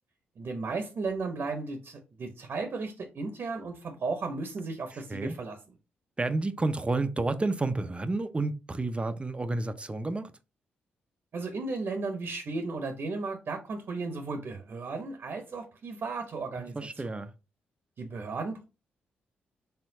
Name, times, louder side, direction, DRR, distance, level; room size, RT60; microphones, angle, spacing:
voice 1, 0.4-5.7 11.3-17.2 18.0-18.6, right 3 dB, 55° right, 0.9 m, -35 dB
voice 2, 6.2-10.3 16.6-17.3, right 2 dB, 25° right, 0.6 m, -30 dB
4.4 x 3.5 x 2.7 m
hypercardioid pair, 45°, 4 cm